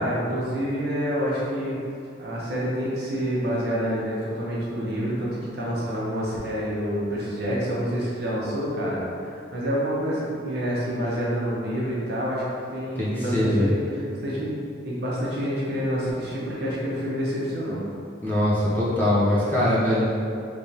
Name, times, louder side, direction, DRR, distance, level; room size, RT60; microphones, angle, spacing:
voice 1, 0.0-1.8 2.2-12.4 12.7-17.8, equal, 55° right, -6 dB, 0.7 m, -28 dB
voice 2, 13.0-13.7 18.2-20.1, left 1 dB, 10° left, -10 dB, 0.6 m, -22 dB
3.4 x 3.3 x 2.8 m, 2.5 s
head